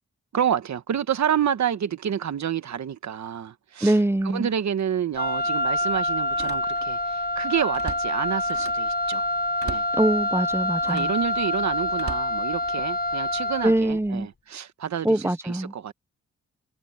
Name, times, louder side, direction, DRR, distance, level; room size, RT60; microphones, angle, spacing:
voice 1, 0.3-4.0 4.3-9.3 9.6-9.9 10.9-15.9, right 9 dB, 70° right, 1.3 m, -29 dB
voice 2, 3.8-4.5 9.9-11.1 13.6-14.3 15.0-15.7, right 1 dB, 10° right, 0.6 m, -23 dB
Slam, 4.1-4.3 4.8-4.9 6.2-7.0 7.4-8.9 9.6-10.0 10.8-11.2 11.9-13.0 13.6-13.9, right 5 dB, 50° right, 2.8 m, -39 dB
Wind instrument woodwind instrument, 5.1-13.9, left 1 dB, 35° left, 1.1 m, -26 dB
wide cardioid pair, 95°, 29 cm